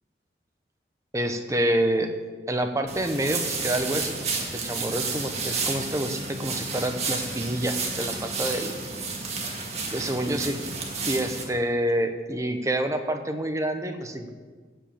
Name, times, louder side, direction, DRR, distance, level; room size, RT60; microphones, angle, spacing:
voice 1, 1.1-2.1 2.5-8.7 9.9-10.6 11.1-14.3, right 1 dB, 20° right, 6 dB, 0.9 m, -27 dB
sound 1, 2.9-11.4, right 4 dB, 40° right, 1.7 m, -31 dB
15.0 x 5.2 x 8.6 m, 1.5 s
head